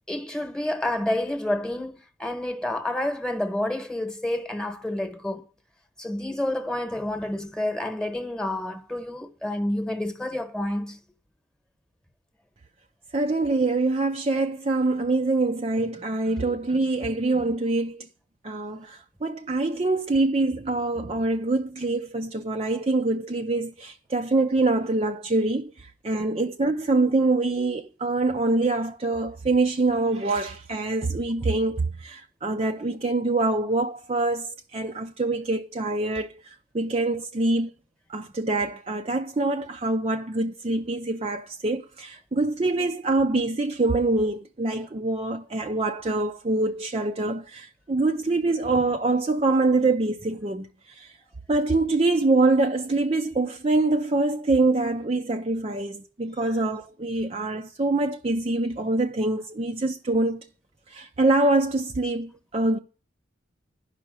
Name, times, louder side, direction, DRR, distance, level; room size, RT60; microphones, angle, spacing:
voice 1, 0.1-5.4 6.0-11.0 56.4-56.5, left 1 dB, 5° left, 1.1 m, -29 dB
voice 2, 13.1-18.1 18.4-37.7 38.1-51.1 51.5-60.5 60.9-62.8, right 2 dB, 30° right, 0.5 m, -25 dB
11.0 x 5.7 x 8.9 m
head